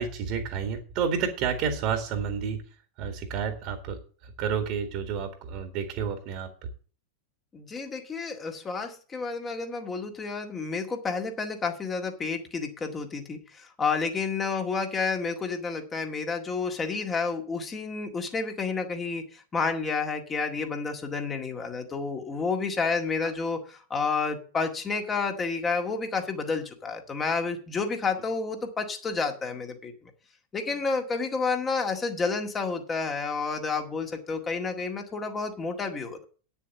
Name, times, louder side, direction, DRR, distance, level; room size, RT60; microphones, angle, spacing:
voice 1, 0.0-2.6 3.0-6.5 23.2-23.3, right 6 dB, 40° right, 6 dB, 1.9 m, -30 dB
voice 2, 7.5-29.9 30.5-36.2, left 4 dB, 20° left, 3 dB, 1.9 m, -30 dB
9.4 x 7.2 x 7.2 m, 0.39 s
figure-of-eight pair, 90°, 0 cm